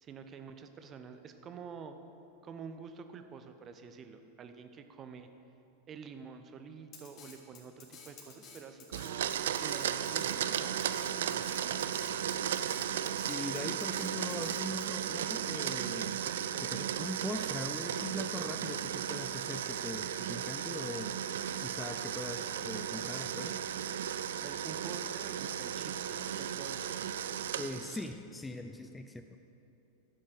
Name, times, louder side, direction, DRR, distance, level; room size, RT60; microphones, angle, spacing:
voice 1, 0.0-2.0 2.4-5.3 5.9-10.9 11.3-12.3 24.4-27.2, right 6 dB, 25° right, 8 dB, 0.8 m, -48 dB
Drum kit, 6.9-14.9, left 5 dB, 35° left, 1.8 m, -52 dB
Domestic sounds home sounds, 8.9-28.1, right 9 dB, 60° right, 0.4 m, -35 dB
voice 2, 13.3-16.2 16.6-21.2 21.6-23.6 27.5-29.4, left 2 dB, 10° left, 7 dB, 0.4 m, -41 dB
11.5 x 7.7 x 6.3 m, 2.9 s
figure-of-eight pair, 90°, 0 cm